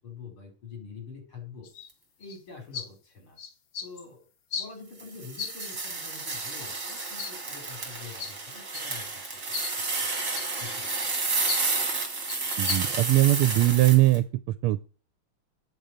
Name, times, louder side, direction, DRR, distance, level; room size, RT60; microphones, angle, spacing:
voice 1, 0.0-1.7 2.2-3.4 3.8-9.1 9.3-10.1 10.4-11.1, left 5 dB, 75° left, 2 dB, 5.6 m, -46 dB
sound 1, 1.6-1.9 2.2-2.4 2.7-2.9 3.4-4.0 4.5-4.7 5.4-5.8 6.5-7.3 8.2-8.3 8.7-8.9 9.3-9.8 10.3-11.8 12.3-12.8, left 6 dB, 60° left, 1.8 m, -37 dB
sound 2, 5.0-14.2, right 3 dB, 35° right, 2.8 m, -31 dB
voice 2, 12.6-14.2 14.6-14.8, right 16 dB, 85° right, 12 dB, 1.5 m, -20 dB
8.9 x 6.9 x 6.4 m, 0.37 s
omnidirectional pair, 2.3 m